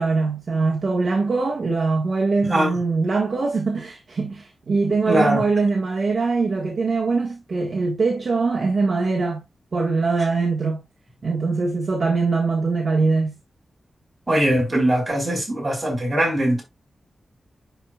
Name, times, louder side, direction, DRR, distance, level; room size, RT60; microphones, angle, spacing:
voice 1, 0.0-9.4 9.7-10.8 11.2-13.3, right 4 dB, 45° right, 1.6 m, -22 dB
voice 2, 2.4-2.8 5.1-5.5 14.3-16.6, right 1 dB, 15° right, 4.4 m, -21 dB
10.5 x 4.7 x 2.4 m
wide cardioid pair, 175°, 0 cm